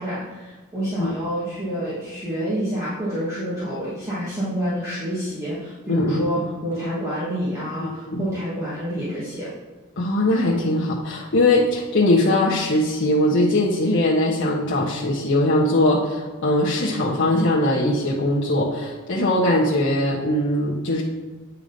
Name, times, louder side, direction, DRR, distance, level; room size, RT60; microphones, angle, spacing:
voice 1, 0.0-9.5, equal, 15° right, -10 dB, 2.0 m, -28 dB
voice 2, 5.9-6.3 7.8-8.2 10.0-21.0, left 1 dB, 60° left, -5 dB, 1.2 m, -21 dB
9.0 x 4.7 x 5.2 m, 1.3 s
head